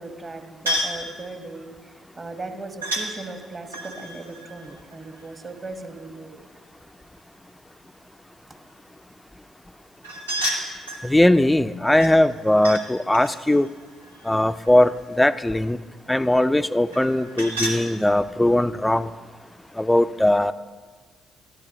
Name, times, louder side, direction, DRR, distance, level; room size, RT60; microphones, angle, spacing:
voice 1, 0.0-6.4, right 3 dB, 30° right, 7 dB, 1.3 m, -38 dB
sound 1, 0.7-1.0 2.8-3.1 3.7-5.5 10.0-11.1 12.0-12.8 13.1-15.0 16.9-17.8, equal, 85° right, 1.0 m, -31 dB
voice 2, 11.0-13.7 14.3-15.8 16.1-19.1 19.8-20.5, left 1 dB, 10° left, 13 dB, 0.4 m, -19 dB
20.5 x 13.5 x 3.0 m, 1.5 s
figure-of-eight pair, 45°, 0 cm